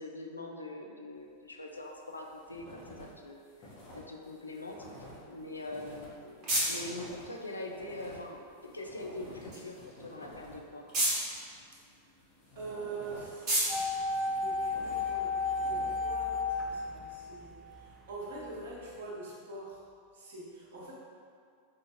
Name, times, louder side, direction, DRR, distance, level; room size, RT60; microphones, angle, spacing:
voice 1, 0.0-10.8, left 2 dB, 80° left, 1 dB, 0.3 m, -43 dB
sound 1, 1.8-3.1 3.4-10.7 11.5-13.4 14.0-16.2, left 1 dB, 45° left, 0.9 m, -51 dB
sound 2, 5.7-15.1, right 1 dB, 35° right, 1.0 m, -37 dB
voice 2, 12.6-19.8 20.1-20.9, right 3 dB, 60° right, -5 dB, 0.8 m, -44 dB
sound 3, 13.7-17.8 18.1-18.2, left 3 dB, 10° right, 0.3 m, -33 dB
4.2 x 2.4 x 2.6 m, 2.3 s
figure-of-eight pair, 90°, 0 cm